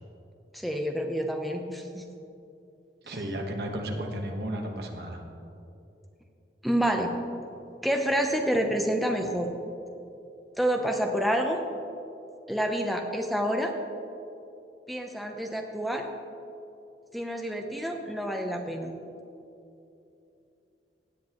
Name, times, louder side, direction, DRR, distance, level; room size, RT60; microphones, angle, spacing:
voice 1, 0.5-2.0 3.1-3.2 6.6-7.1 7.8-9.5 10.6-11.6 12.5-13.7 14.9-16.1 17.1-19.0, equal, ahead, 3 dB, 0.6 m, -28 dB
voice 2, 3.0-5.2, right 1 dB, 60° right, 2 dB, 1.2 m, -33 dB
17.0 x 7.8 x 3.0 m, 2.8 s
head